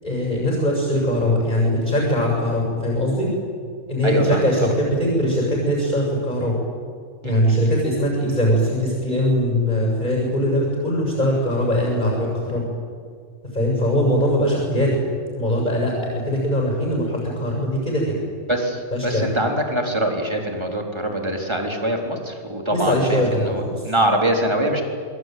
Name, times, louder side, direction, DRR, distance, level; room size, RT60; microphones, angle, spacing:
voice 1, 0.0-3.3 3.9-6.6 7.2-12.7 13.5-15.0 15.4-18.2 18.9-19.3 22.7-23.8, equal, 30° left, -1 dB, 7.3 m, -21 dB
voice 2, 4.0-4.7 7.2-7.7 18.5-24.8, right 1 dB, 20° right, 2 dB, 3.8 m, -24 dB
26.5 x 23.5 x 9.4 m, 2.1 s
omnidirectional pair, 1.5 m